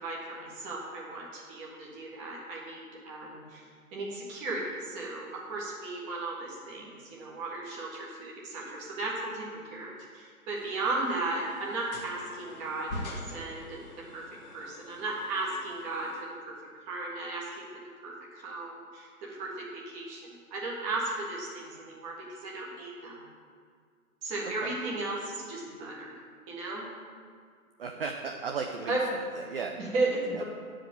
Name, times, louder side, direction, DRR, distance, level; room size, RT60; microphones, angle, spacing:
voice 1, 0.0-3.6 3.9-9.4 9.7-13.8 14.1-14.2 14.5-16.5 16.9-17.6 18.0-22.1 22.4-23.2 24.2-26.0 26.5-26.8 28.9-29.0 29.8-30.4, right 2 dB, 15° right, -4 dB, 1.5 m, -35 dB
sound 1, 10.5-16.2, left 1 dB, 30° left, 1.3 m, -45 dB
voice 2, 24.4-24.7 27.8-29.7 30.3-30.4, right 5 dB, 40° right, 3 dB, 0.6 m, -36 dB
9.5 x 5.0 x 7.7 m, 2.1 s
figure-of-eight pair, 140°, 45 cm